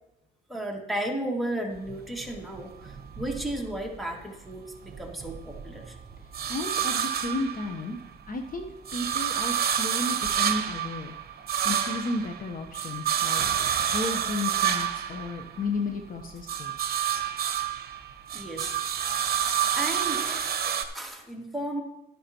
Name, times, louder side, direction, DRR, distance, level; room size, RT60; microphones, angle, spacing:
voice 1, 0.5-6.0 18.3-18.8 19.2-21.8, right 1 dB, ahead, 0 dB, 2.2 m, -34 dB
sound 1, 1.8-4.1 4.5-8.2 8.5-16.0 16.3-20.9, right 9 dB, 50° right, 1.0 m, -29 dB
voice 2, 6.5-8.0 8.3-11.1 11.6-13.4 13.9-16.9, left 3 dB, 45° left, 4 dB, 1.0 m, -33 dB
11.5 x 11.0 x 3.0 m, 0.95 s
cardioid pair, 90°, 20 cm